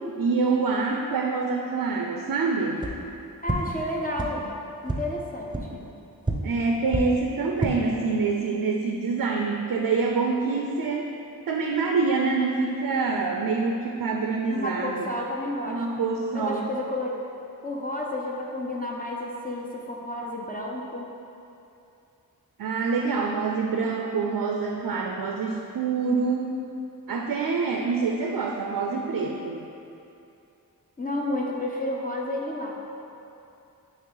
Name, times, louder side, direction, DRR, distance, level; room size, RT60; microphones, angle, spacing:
voice 1, 0.0-2.8 6.4-11.1 11.5-15.1 15.7-16.7 22.6-26.5 27.1-29.6, right 4 dB, 75° right, 1 dB, 0.5 m, -26 dB
sound 1, 2.8-2.9 3.4-3.6 4.1-4.3 4.8-5.0 5.5-5.6 6.2-6.3 6.9-7.0 7.4-7.7, right 3 dB, 15° right, 0.7 m, -27 dB
voice 2, 3.4-4.5 4.8-5.8 14.5-15.9 16.3-17.2 17.6-21.1 31.0-32.7, left 1 dB, 25° left, -3 dB, 0.5 m, -31 dB
8.7 x 3.1 x 3.9 m, 2.7 s
wide cardioid pair, 80°, 36 cm